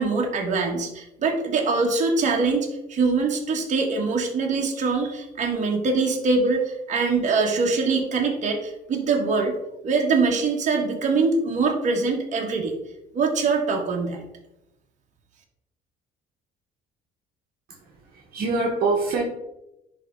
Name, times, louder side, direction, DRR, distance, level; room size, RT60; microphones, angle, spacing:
voice 1, 0.0-9.5 9.8-12.7 13.1-14.2, right 4 dB, 45° right, 0 dB, 1.6 m, -23 dB
voice 2, 17.7-19.2, right 3 dB, 60° right, -1 dB, 1.4 m, -25 dB
10.5 x 3.6 x 3.8 m, 0.90 s
cardioid pair, 110°, 17 cm